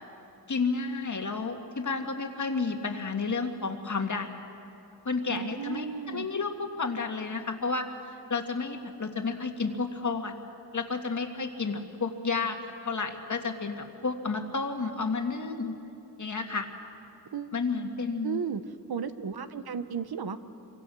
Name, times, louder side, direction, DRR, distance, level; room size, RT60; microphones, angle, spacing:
voice 1, 0.5-4.4 5.1-7.9 8.3-10.3 10.7-15.8 16.2-16.7 17.5-18.4, left 4 dB, 50° left, 4 dB, 1.9 m, -31 dB
voice 2, 5.3-6.3 17.3-17.5 18.2-18.6 18.9-20.4, right 7 dB, 75° right, 11 dB, 1.0 m, -34 dB
26.0 x 24.5 x 6.3 m, 2.7 s
wide cardioid pair, 105°, 38 cm